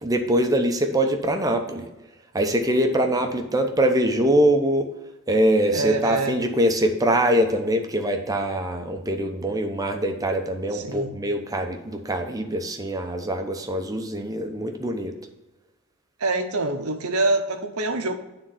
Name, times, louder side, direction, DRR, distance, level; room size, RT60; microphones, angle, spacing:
voice 1, 0.0-1.9 2.3-4.9 5.3-15.2, right 1 dB, 15° right, 0.8 m, -23 dB
voice 2, 5.7-6.4 10.7-11.1 16.2-18.2, right 2 dB, 80° right, 0.9 m, -25 dB
9.5 x 3.8 x 5.7 m
head